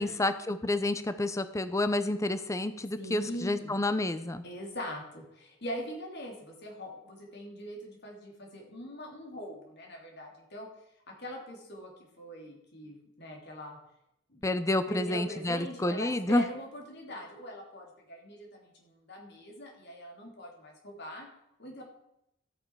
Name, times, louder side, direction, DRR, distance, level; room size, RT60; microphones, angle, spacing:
voice 1, 0.0-4.4 14.4-16.4, left 2 dB, 15° left, 12 dB, 0.6 m, -29 dB
voice 2, 3.0-3.7 4.4-10.7 11.1-11.9 12.2-13.8 14.3-14.4 14.9-21.3 21.6-21.8, equal, 55° left, 0 dB, 3.1 m, -42 dB
13.0 x 8.7 x 4.7 m, 0.81 s
head